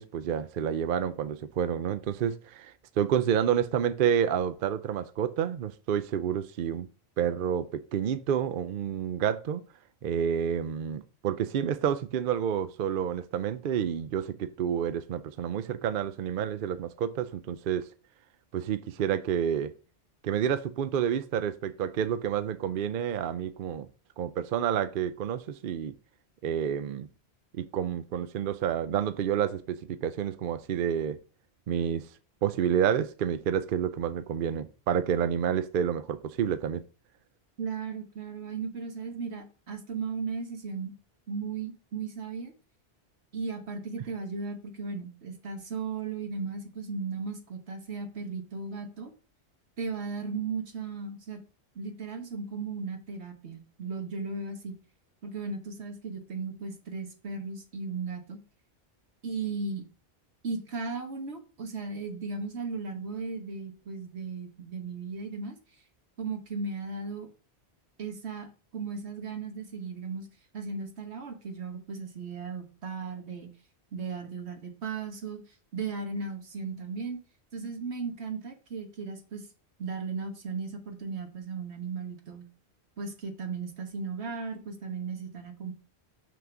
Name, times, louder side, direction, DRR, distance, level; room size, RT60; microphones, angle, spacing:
voice 1, 0.0-6.9 7.2-9.6 10.0-17.9 18.5-19.7 20.2-23.9 24.2-25.9 26.4-27.1 27.5-31.2 31.7-32.1 32.4-36.8, right 9 dB, 60° right, 0.7 m, -29 dB
voice 2, 37.6-40.9 41.3-42.5 43.3-49.1 49.8-51.4 51.7-54.8 55.2-58.4 59.2-59.9 60.4-65.5 66.2-67.3 68.0-68.5 68.7-70.3 70.5-73.5 73.9-75.4 75.7-77.2 77.5-79.5 79.8-82.5 83.0-85.7, right 4 dB, 85° right, 1.5 m, -36 dB
6.1 x 3.8 x 5.9 m
omnidirectional pair, 1.1 m